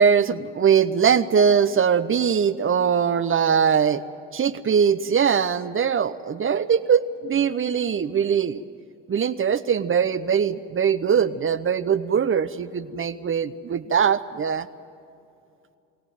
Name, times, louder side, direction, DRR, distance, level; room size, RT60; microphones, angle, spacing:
voice 1, 0.0-4.0 4.3-8.6 9.1-14.7, right 7 dB, 35° right, 12 dB, 0.8 m, -21 dB
22.5 x 17.5 x 9.3 m, 2.6 s
hypercardioid pair, 55°, 37 cm